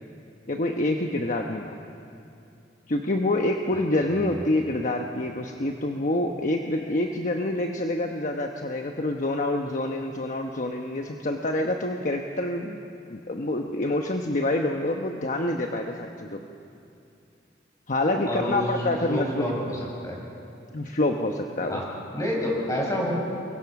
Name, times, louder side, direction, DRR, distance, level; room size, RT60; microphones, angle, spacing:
voice 1, 0.5-1.7 2.9-12.8 13.1-16.4 17.9-19.4 20.7-21.8, left 1 dB, 45° left, 3 dB, 1.1 m, -27 dB
voice 2, 4.1-4.4 18.2-18.6 19.1-20.2 21.7-21.8 22.1-23.1, left 1 dB, 20° left, -3 dB, 6.6 m, -29 dB
29.0 x 22.5 x 6.0 m, 2.6 s
head